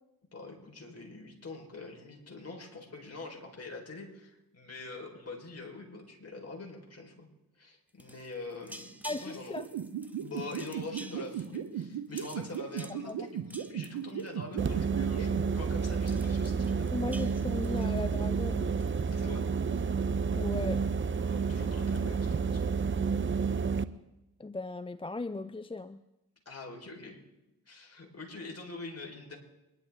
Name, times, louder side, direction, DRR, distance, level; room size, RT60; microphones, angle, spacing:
voice 1, 0.3-7.3 7.6-9.6 10.2-16.9 19.1-19.5 21.2-22.6 26.5-27.2 27.7-29.4, left 3 dB, 40° left, 1 dB, 4.4 m, -44 dB
sound 1, 7.9-14.7 15.0-15.3 15.6-15.7 15.9-18.4 18.8-19.1, right 1 dB, 5° right, 1.5 m, -50 dB
voice 2, 9.0-9.7 13.1-13.3 16.9-18.8 20.3-20.8 24.4-26.0, left 3 dB, 15° left, 14 dB, 0.5 m, -37 dB
sound 2, 9.6-15.4, right 10 dB, 75° right, 1.2 m, -35 dB
sound 3, 14.6-23.8, right 5 dB, 30° right, 0.7 m, -30 dB
24.0 x 11.5 x 3.6 m, 0.95 s
supercardioid pair, 40°, 40 cm